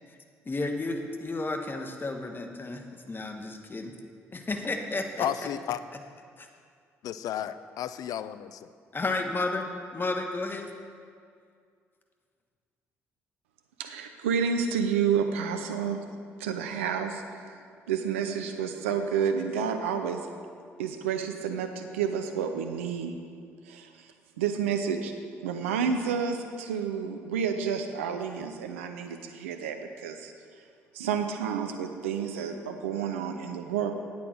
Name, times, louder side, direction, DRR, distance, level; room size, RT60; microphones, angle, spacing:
voice 1, 0.4-3.9 4.3-5.3 6.4-6.5 8.9-9.6 9.9-10.7, left 2 dB, 30° left, 4 dB, 1.4 m, -32 dB
voice 2, 5.2-5.8 7.0-8.5, left 10 dB, 65° left, 13 dB, 0.5 m, -32 dB
voice 3, 13.8-16.0 16.4-17.6 17.9-20.3 20.8-23.1 23.7-25.1 25.4-30.3 30.9-33.9, right 7 dB, 90° right, 6 dB, 0.6 m, -30 dB
9.0 x 8.5 x 6.2 m, 2.2 s
hypercardioid pair, 50°, 7 cm